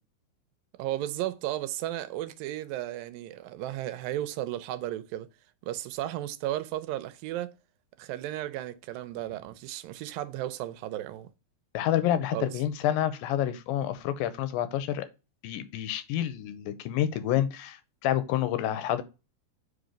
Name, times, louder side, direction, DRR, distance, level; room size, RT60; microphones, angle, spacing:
voice 1, 0.8-5.3 5.6-7.5 8.0-11.3 12.3-12.5, right 14 dB, 80° right, 2.3 m, -34 dB
voice 2, 11.7-15.1 15.4-19.0, left 11 dB, 85° left, 2.5 m, -28 dB
5.1 x 4.0 x 5.0 m
omnidirectional pair, 4.1 m